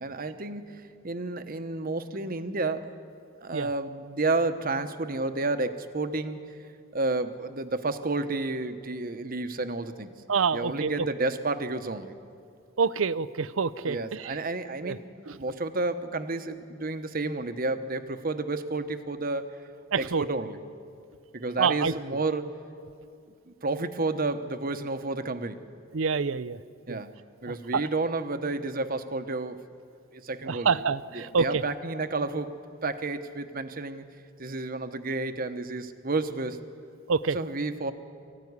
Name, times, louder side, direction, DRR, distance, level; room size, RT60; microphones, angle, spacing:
voice 1, 0.0-2.9 3.4-6.4 6.9-10.1 10.5-12.1 13.8-15.1 15.4-19.7 19.9-20.6 21.3-22.6 23.5-25.7 26.9-27.1 27.4-29.6 30.1-30.8 31.1-32.6 32.8-34.0 34.4-36.6 37.3-37.9, right 3 dB, 45° right, 9 dB, 1.1 m, -31 dB
voice 2, 10.3-10.9 12.8-14.4 14.8-15.0 15.3-15.4 19.9-20.2 21.6-21.9 25.9-26.6 26.9-27.0 27.5-27.8 30.5-31.6 37.1-37.4, right 5 dB, 75° right, 16 dB, 0.6 m, -27 dB
24.0 x 15.5 x 9.7 m, 2.3 s
head